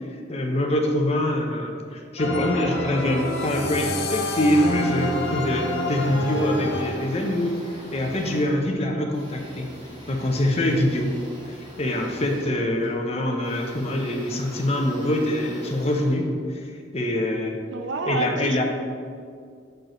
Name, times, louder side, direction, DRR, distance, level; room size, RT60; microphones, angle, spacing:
voice 1, 0.3-7.6 7.9-9.7 10.1-11.1 11.5-16.3 16.5-16.6 16.9-17.6 18.1-18.6, left 1 dB, 35° left, 2 dB, 0.8 m, -24 dB
sound 1, 2.2-7.4, left 1 dB, 75° left, 0.8 m, -28 dB
sound 2, 3.1-5.6, left 11 dB, 55° left, 0.4 m, -37 dB
sound 3, 4.7-16.9, equal, 25° right, 1.6 m, -44 dB
voice 2, 17.7-18.6, right 4 dB, 75° right, 7 dB, 0.5 m, -29 dB
7.7 x 4.6 x 3.9 m, 2.2 s
head